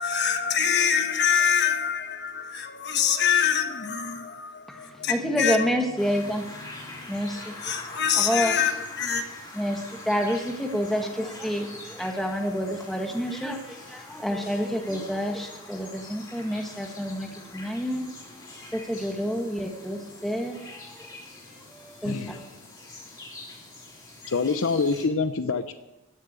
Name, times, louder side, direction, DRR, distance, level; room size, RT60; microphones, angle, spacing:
voice 1, 0.0-5.7 7.3-9.2, left 7 dB, 50° left, 1.4 m, -25 dB
voice 2, 4.7-7.7 8.2-8.5 9.5-18.0 18.7-20.9 21.8-22.4, equal, ahead, 1.5 m, -29 dB
sound 1, 6.0-25.0, left 2 dB, 20° left, 3.6 m, -44 dB
voice 3, 22.0-22.4 24.3-25.7, left 4 dB, 65° left, 0.6 m, -26 dB
14.5 x 7.3 x 8.2 m
head